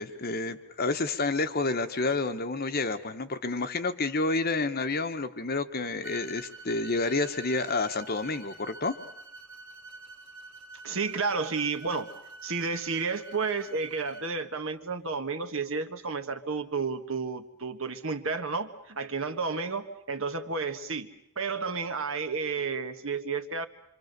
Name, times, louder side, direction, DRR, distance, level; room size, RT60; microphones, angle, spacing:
voice 1, 0.0-9.0, left 3 dB, 45° left, 8 dB, 1.2 m, -29 dB
sound 1, 6.0-14.3, right 3 dB, 80° right, 2.5 m, -47 dB
voice 2, 10.8-12.1 12.4-21.1 21.4-23.7, right 4 dB, 60° right, 7 dB, 1.5 m, -31 dB
26.0 x 26.0 x 6.8 m, 0.77 s
head